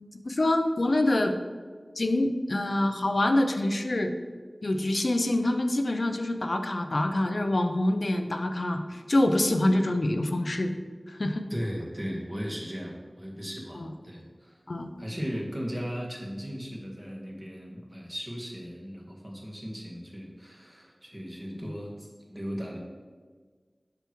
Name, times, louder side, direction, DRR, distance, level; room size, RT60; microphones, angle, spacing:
voice 1, 0.2-1.3 2.0-4.1 4.6-10.8 11.1-11.5 13.7-13.9 14.7-14.9, left 1 dB, 65° left, 6 dB, 0.5 m, -26 dB
voice 2, 11.5-14.6 15.0-22.8, equal, 30° right, -2 dB, 1.5 m, -37 dB
6.8 x 5.9 x 3.0 m, 1.5 s
wide cardioid pair, 55°, 0 cm